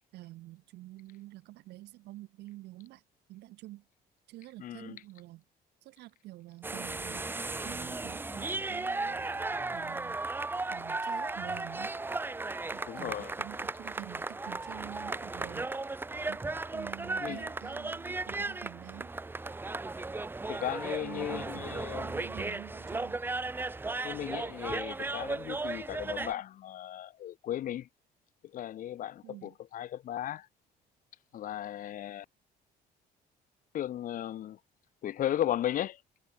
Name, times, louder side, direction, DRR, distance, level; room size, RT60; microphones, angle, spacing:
voice 1, 0.1-3.0 3.3-3.9 4.3-5.4 5.8-9.2 9.7-10.2 10.7-12.0 12.7-15.7 16.3-16.4 16.7-19.1 21.0-23.2 29.2-29.6, right 17 dB, 80° right, 2.5 m, -48 dB
voice 2, 4.6-4.9 12.9-13.3 17.2-17.4 20.5-22.2 24.0-27.9 28.5-30.5 31.3-32.2 33.7-34.6 35.0-36.0, left 12 dB, 55° left, 0.7 m, -36 dB
sound 1, 6.6-26.3, right 3 dB, 10° right, 0.6 m, -36 dB
cardioid pair, 110°, 17 cm